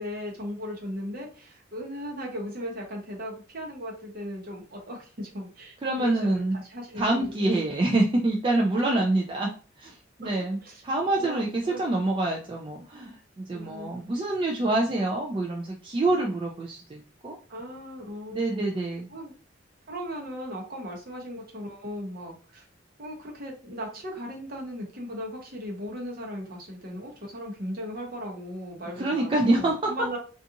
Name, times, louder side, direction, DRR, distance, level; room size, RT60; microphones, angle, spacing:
voice 1, 0.0-7.5 10.2-10.3 10.6-10.8 11.1-11.8 13.5-13.9 16.1-16.3 17.5-18.6 19.1-19.3 19.9-22.6 23.0-30.2, equal, 50° right, -1 dB, 0.9 m, -37 dB
voice 2, 5.8-6.6 6.9-9.5 9.8-10.6 10.8-17.4 18.3-19.1 29.0-29.9, right 2 dB, 25° right, -1 dB, 0.4 m, -26 dB
2.5 x 2.4 x 2.7 m, 0.38 s
head